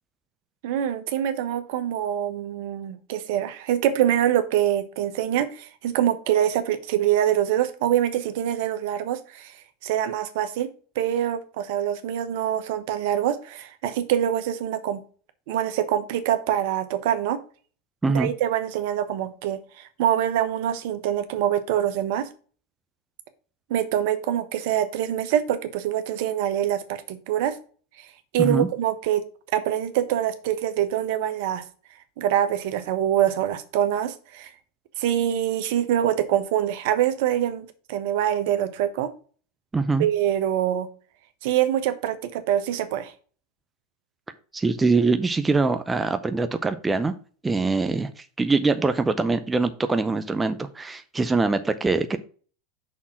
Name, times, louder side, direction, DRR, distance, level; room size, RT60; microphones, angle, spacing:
voice 1, 0.6-9.5 9.8-15.0 15.5-17.4 18.1-22.3 23.7-27.6 28.3-29.2 29.5-31.6 32.2-34.5 35.0-39.1 40.0-40.9 41.4-43.1, right 11 dB, 65° right, 10 dB, 1.0 m, -25 dB
voice 2, 39.7-40.1 44.5-47.1 47.4-52.2, right 3 dB, 15° right, 9 dB, 0.6 m, -23 dB
6.3 x 3.7 x 5.8 m, 0.40 s
hypercardioid pair, 100°, 0 cm